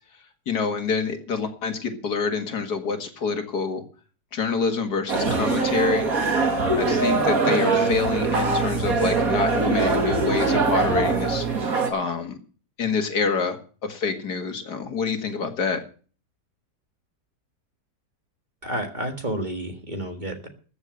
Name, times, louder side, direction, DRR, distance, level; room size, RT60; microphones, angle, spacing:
voice 1, 0.5-3.8 4.3-6.1 6.8-11.5 11.9-12.4 12.8-15.8, left 5 dB, 80° left, 6 dB, 2.5 m, -27 dB
sound 1, 5.1-11.9, right 3 dB, 60° right, 2.6 m, -22 dB
voice 2, 18.6-20.5, right 1 dB, 30° right, 5 dB, 1.9 m, -30 dB
14.0 x 7.0 x 8.0 m, 0.39 s
omnidirectional pair, 1.7 m